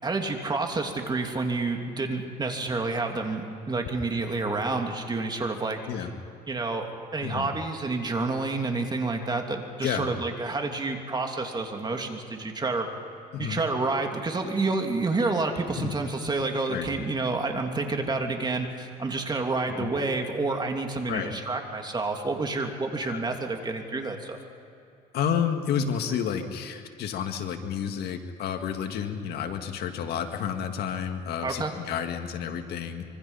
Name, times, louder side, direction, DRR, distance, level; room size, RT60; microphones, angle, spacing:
voice 1, 0.0-5.8 6.5-12.9 13.4-24.4 31.4-31.7, right 3 dB, 25° right, 3 dB, 2.8 m, -29 dB
voice 2, 9.8-10.1 13.3-13.6 15.8-15.9 16.7-16.9 19.8-19.9 21.1-21.3 23.0-23.2 25.1-33.0, left 8 dB, 70° left, 6 dB, 2.0 m, -30 dB
25.5 x 24.5 x 5.7 m, 2.6 s
cardioid pair, 110°, 17 cm